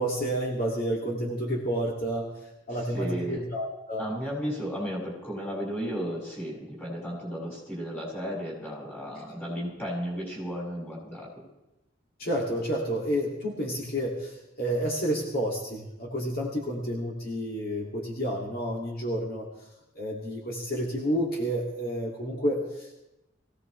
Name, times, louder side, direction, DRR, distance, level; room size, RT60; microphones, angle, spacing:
voice 1, 0.0-2.3 2.7-4.1 12.2-19.5 19.9-23.0, equal, 50° left, -2 dB, 2.5 m, -30 dB
voice 2, 2.7-3.4 4.0-11.5, equal, 10° left, -5 dB, 6.3 m, -34 dB
22.0 x 16.5 x 3.3 m, 0.92 s
head